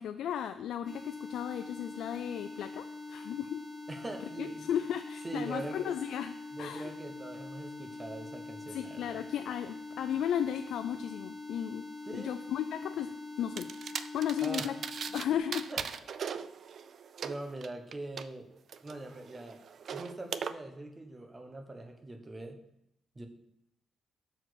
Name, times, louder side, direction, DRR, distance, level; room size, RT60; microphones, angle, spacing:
voice 1, 0.0-3.6 4.4-6.9 8.7-11.9 12.1-14.8 15.1-15.7, left 9 dB, 75° left, 8 dB, 0.3 m, -35 dB
sound 1, 0.9-15.4, left 3 dB, 15° left, 1.1 m, -44 dB
voice 2, 3.9-4.7 5.2-5.9 6.5-9.2 12.1-12.4 14.4-14.8 15.1-15.2 15.7-15.9 16.3-16.4 17.2-18.5 18.8-19.6 19.9-22.6 23.1-23.3, right 2 dB, 15° right, 6 dB, 0.9 m, -42 dB
sound 2, 13.6-15.3 15.5-18.2 18.7-20.5, right 7 dB, 50° right, 0.3 m, -39 dB
6.4 x 4.7 x 6.2 m, 0.79 s
cardioid pair, 150°, 0 cm